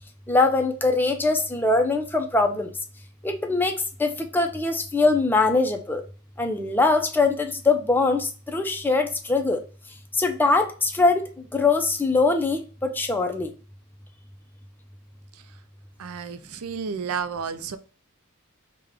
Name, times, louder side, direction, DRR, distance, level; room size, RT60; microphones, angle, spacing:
voice 1, 0.3-2.7 3.2-6.0 6.4-9.6 10.2-11.2 11.5-13.5, left 3 dB, 10° left, 4 dB, 0.4 m, -22 dB
voice 2, 16.0-17.8, right 6 dB, 80° right, 11 dB, 0.4 m, -31 dB
3.6 x 2.2 x 3.3 m, 0.37 s
head